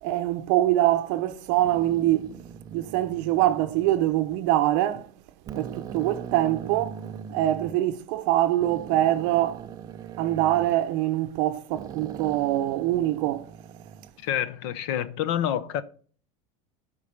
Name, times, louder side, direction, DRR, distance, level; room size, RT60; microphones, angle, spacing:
voice 1, 0.0-2.3 2.7-5.1 5.5-7.0 7.3-9.6 10.2-13.5, right 14 dB, 55° right, 0.7 m, -24 dB
sound 1, 1.5-4.4 4.9-5.1 5.5-7.8 8.6-11.4 11.7-14.1, right 8 dB, 20° right, 0.4 m, -41 dB
voice 2, 14.2-15.8, left 10 dB, 55° left, 0.7 m, -28 dB
8.3 x 5.3 x 6.8 m
cardioid pair, 180°, 18 cm